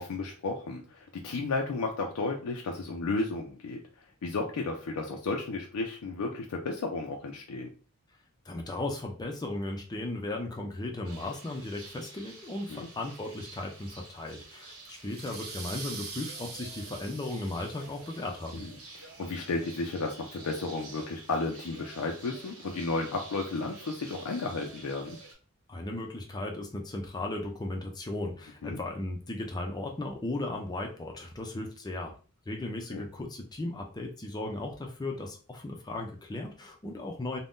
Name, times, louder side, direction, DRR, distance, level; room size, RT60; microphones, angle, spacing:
voice 1, 0.0-3.8 4.2-7.7 12.7-12.9 18.5-25.2 28.6-28.8 32.9-33.1, left 3 dB, 85° left, 1 dB, 0.4 m, -33 dB
voice 2, 8.5-18.6 25.7-32.2 32.5-37.4, left 2 dB, 20° left, 2 dB, 0.4 m, -36 dB
sound 1, 11.0-25.3, right 3 dB, 85° right, 1.1 m, -49 dB
sound 2, 15.1-18.5, right 4 dB, 45° right, 0.7 m, -43 dB
2.6 x 2.1 x 3.5 m, 0.38 s
head